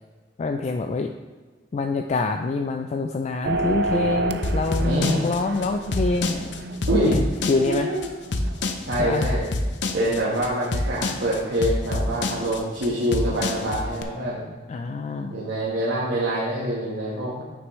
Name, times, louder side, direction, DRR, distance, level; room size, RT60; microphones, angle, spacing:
voice 1, 0.4-1.1 1.7-6.6 7.0-7.2 7.5-7.9 9.0-9.2 14.7-15.4, left 3 dB, 40° left, 5 dB, 0.3 m, -26 dB
sound 1, 3.4-8.6, right 2 dB, 65° right, 0.4 m, -30 dB
sound 2, 4.4-14.0, left 2 dB, 75° left, 0.6 m, -26 dB
voice 2, 4.8-5.2 6.9-7.2 7.6-8.0 8.9-9.5 9.9-14.4 15.3-17.4, right 1 dB, 85° right, -7 dB, 1.3 m, -25 dB
9.3 x 6.1 x 3.1 m, 1.4 s
head